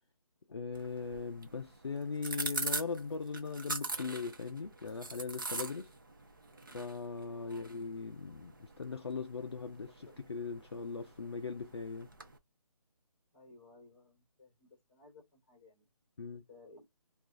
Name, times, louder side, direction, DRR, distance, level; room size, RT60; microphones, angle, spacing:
voice 1, 0.5-5.9 6.7-12.1 16.2-16.4, left 4 dB, 45° left, 0.4 m, -39 dB
sound 1, 0.7-12.4, right 3 dB, 35° right, 0.6 m, -43 dB
voice 2, 7.3-7.7 9.8-10.2 13.3-15.9 16.3-16.9, left 2 dB, 15° left, 1.1 m, -59 dB
2.9 x 2.4 x 3.7 m
hypercardioid pair, 175°, 19 cm